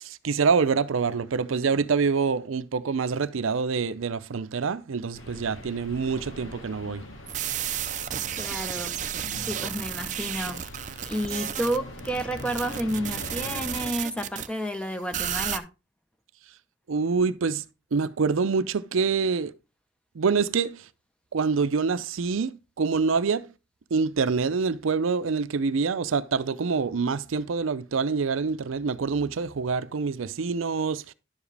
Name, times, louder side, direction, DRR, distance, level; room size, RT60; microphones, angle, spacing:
voice 1, 0.0-7.0 16.9-17.6 17.9-19.5 20.1-20.9 21.3-23.4 23.9-31.1, right 5 dB, 85° right, 0.5 m, -26 dB
sound 1, 5.1-13.9, left 1 dB, 90° left, 2.1 m, -42 dB
sound 2, 7.3-14.5 15.1-15.6, right 10 dB, 35° right, 0.5 m, -32 dB
voice 2, 8.3-8.9 9.5-10.6 11.1-15.7, right 1 dB, 5° left, 0.7 m, -30 dB
11.0 x 7.1 x 3.3 m
head